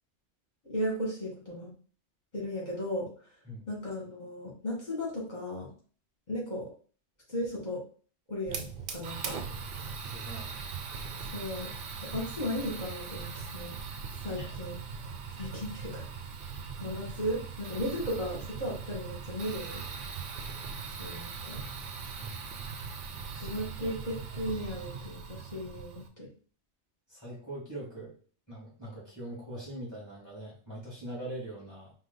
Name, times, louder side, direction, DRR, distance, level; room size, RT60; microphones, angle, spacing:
voice 1, 0.6-1.7 2.3-3.1 3.7-5.7 6.3-6.7 7.3-7.8 8.3-9.4 11.3-11.7 12.1-13.8 14.2-14.8 15.4-16.0 16.8-19.8 21.0-21.6 23.4-26.3, equal, 40° left, -4 dB, 2.1 m, -35 dB
Fire, 8.5-26.1, right 5 dB, 55° right, 0.7 m, -40 dB
voice 2, 10.0-10.5 14.3-14.5 15.5-15.6 22.2-22.5 23.3-23.9 27.1-28.1 28.5-31.9, right 1 dB, 15° left, -6 dB, 2.1 m, -42 dB
4.7 x 2.3 x 4.0 m, 0.42 s
omnidirectional pair, 1.2 m